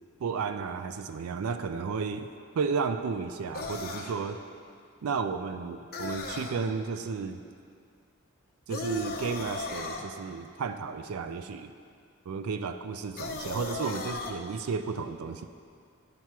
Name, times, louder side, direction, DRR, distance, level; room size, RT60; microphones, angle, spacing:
voice 1, 0.2-2.3 2.6-4.4 5.0-7.4 8.7-11.7 12.3-15.5, right 5 dB, 80° right, 9 dB, 0.4 m, -33 dB
sound 1, 3.5-4.2 5.9-6.6 8.7-10.1 13.2-14.3, left 3 dB, 45° left, 0.7 m, -36 dB
10.0 x 5.8 x 4.6 m, 2.3 s
head